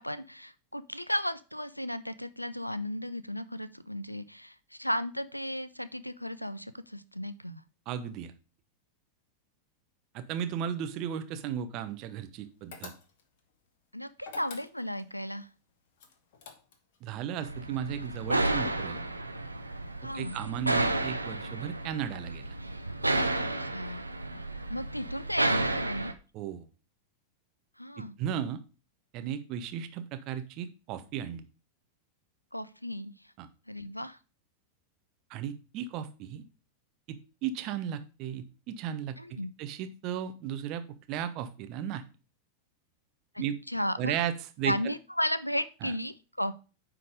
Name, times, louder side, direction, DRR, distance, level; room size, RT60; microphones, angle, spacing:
voice 1, 0.0-7.6 13.9-15.5 20.0-20.4 23.6-24.1 24.7-26.1 27.8-28.1 32.5-33.1 33.7-34.2 39.2-39.5 43.3-44.1 44.6-46.5, equal, 90° left, 16 dB, 0.4 m, -34 dB
voice 2, 7.9-8.3 10.1-12.9 17.0-19.1 20.1-22.5 26.3-26.7 28.0-28.6 29.1-31.4 33.4-33.5 35.3-36.4 37.1-42.0 43.4-43.6 44.0-44.7 45.8-45.9, right 9 dB, 40° right, 9 dB, 0.9 m, -35 dB
sound 1, 12.7-13.4 14.2-15.1 16.0-17.0, left 5 dB, 50° left, 1.2 m, -47 dB
sound 2, 17.4-26.1, right 2 dB, 85° right, 0.7 m, -32 dB
9.5 x 3.8 x 5.1 m, 0.33 s
figure-of-eight pair, 90°, 0 cm